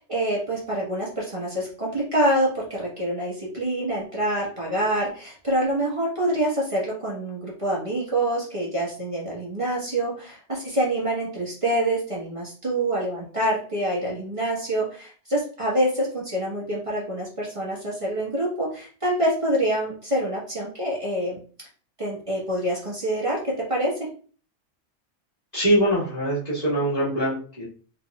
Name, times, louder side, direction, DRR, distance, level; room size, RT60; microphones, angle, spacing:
voice 1, 0.0-21.4 22.0-23.9, right 1 dB, 25° right, -5 dB, 1.3 m, -26 dB
voice 2, 25.5-27.7, right 1 dB, 30° left, -11 dB, 1.8 m, -23 dB
4.1 x 3.9 x 2.3 m, 0.41 s
omnidirectional pair, 1.3 m